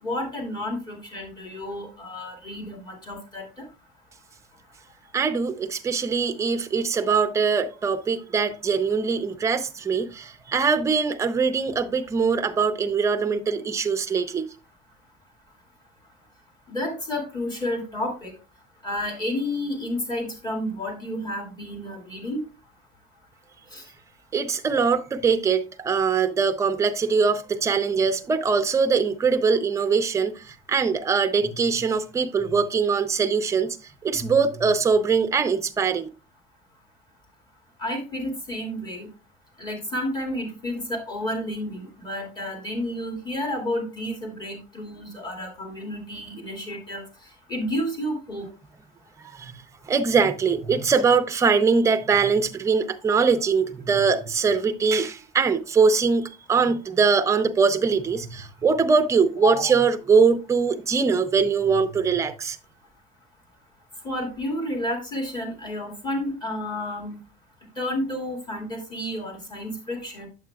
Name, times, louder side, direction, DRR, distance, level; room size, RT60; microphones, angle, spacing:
voice 1, 0.0-3.6 16.7-18.3 18.8-22.4 23.7-23.8 37.8-39.1 39.6-47.0 47.5-48.5 59.4-59.7 64.0-67.2 67.8-70.3, left 1 dB, 20° left, 2.3 m, -31 dB
voice 2, 5.1-14.5 24.3-30.3 30.7-33.8 34.0-36.1 49.2-49.5 49.9-62.6, right 5 dB, 15° right, 0.5 m, -22 dB
8.5 x 7.6 x 2.3 m
cardioid pair, 165°, 20 cm